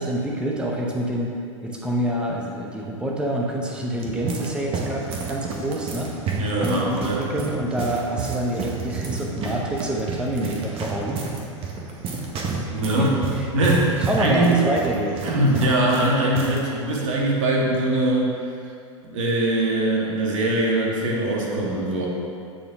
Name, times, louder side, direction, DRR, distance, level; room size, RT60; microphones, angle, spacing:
voice 1, 0.0-1.3 1.6-6.1 6.6-11.2 12.9-13.5 14.0-15.2, right 1 dB, 5° right, -1 dB, 0.6 m, -27 dB
sound 1, 3.7-16.6 16.9-17.0 17.7-18.0, right 4 dB, 35° right, 1.0 m, -30 dB
voice 2, 6.4-7.2 12.7-13.2 13.5-14.6 15.2-18.3 19.0-22.1, right 1 dB, 70° right, -3 dB, 1.5 m, -22 dB
8.4 x 4.3 x 3.5 m, 2.5 s
hypercardioid pair, 105°, 17 cm